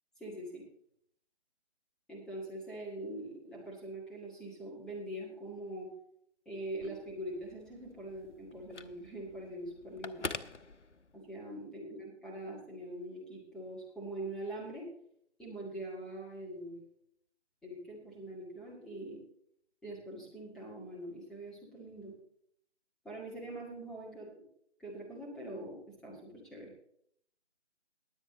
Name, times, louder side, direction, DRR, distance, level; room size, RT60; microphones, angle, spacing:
voice 1, 0.2-0.6 2.1-5.9 6.5-10.3 11.1-14.9 15.4-16.8 17.6-19.2 19.8-22.2 23.0-24.3 24.8-26.7, right 1 dB, ahead, -6 dB, 1.9 m, -43 dB
Telephone, 6.6-11.4, left 3 dB, 90° left, 0.9 m, -46 dB
20.5 x 8.0 x 3.1 m, 0.69 s
figure-of-eight pair, 150°, 34 cm